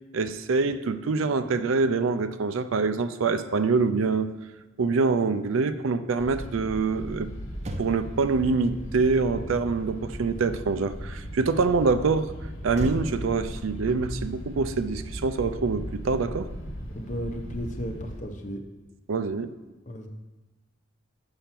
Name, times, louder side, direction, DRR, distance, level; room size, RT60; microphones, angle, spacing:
voice 1, 0.1-4.3 4.8-7.3 7.8-12.3 12.6-16.5 19.1-19.5, right 4 dB, 80° right, 12 dB, 0.5 m, -25 dB
sound 1, 6.2-18.2, equal, 85° left, 1.5 m, -37 dB
Motor vehicle (road), 7.5-11.1 12.7-15.3 15.6-15.8, right 1 dB, 35° right, 0.6 m, -41 dB
voice 2, 16.9-18.6 19.9-20.1, equal, 40° left, 4 dB, 0.9 m, -34 dB
6.9 x 5.6 x 5.9 m, 1.1 s
head